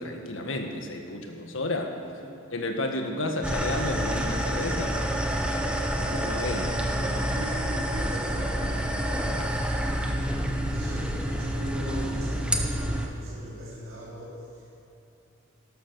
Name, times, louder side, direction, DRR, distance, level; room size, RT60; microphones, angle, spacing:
voice 1, 0.0-2.0 2.5-5.0 6.0-6.7 7.0-7.2, left 2 dB, 70° left, 4 dB, 1.6 m, -32 dB
sound 1, 3.4-13.1, equal, 5° right, 0.9 m, -28 dB
voice 2, 7.3-9.3 10.7-14.8, equal, 90° right, -8 dB, 3.8 m, -40 dB
12.5 x 12.5 x 6.8 m, 3.0 s
head